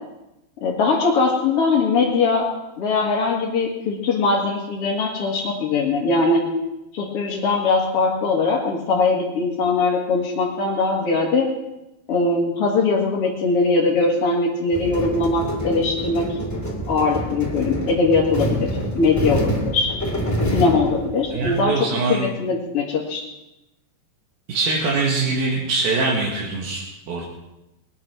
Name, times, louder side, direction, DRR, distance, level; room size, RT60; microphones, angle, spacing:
voice 1, 0.6-2.5 2.8-6.5 6.9-11.5 12.1-16.3 16.9-19.9 20.5-21.7 22.1-23.2, left 3 dB, 45° left, -4 dB, 2.2 m, -21 dB
sound 1, 14.7-21.6, equal, 5° left, 1.8 m, -26 dB
voice 2, 21.3-22.3 24.5-27.3, right 3 dB, 60° right, -3 dB, 3.5 m, -23 dB
21.0 x 9.8 x 6.0 m, 0.94 s
omnidirectional pair, 4.9 m